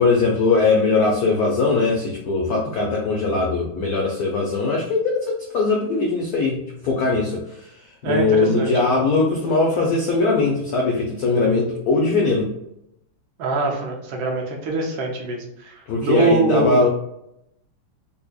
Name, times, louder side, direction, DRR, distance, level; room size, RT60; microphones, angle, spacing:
voice 1, 0.0-5.2 5.5-7.7 8.0-12.5 15.9-16.9, left 3 dB, 80° left, -1 dB, 0.8 m, -20 dB
voice 2, 8.0-9.0 13.4-16.8, right 3 dB, 70° right, 0 dB, 1.4 m, -24 dB
4.1 x 2.6 x 2.3 m, 0.80 s
omnidirectional pair, 2.3 m